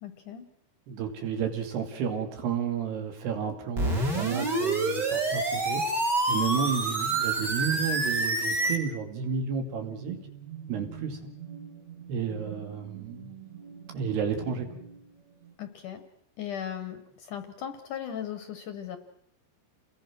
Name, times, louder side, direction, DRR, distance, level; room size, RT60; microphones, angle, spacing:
voice 1, 0.0-0.5 15.6-16.0 16.4-19.0, left 9 dB, 65° left, 9 dB, 2.3 m, -37 dB
voice 2, 0.9-5.8 6.3-10.2 10.7-11.3 12.1-13.3 13.9-14.7, right 7 dB, 70° right, 5 dB, 4.5 m, -31 dB
sound 1, 3.8-8.8, right 2 dB, 25° right, 3.3 m, -27 dB
sound 2, 9.0-15.5, right 8 dB, 45° right, 4.5 m, -46 dB
29.0 x 21.0 x 6.2 m, 0.76 s
omnidirectional pair, 4.9 m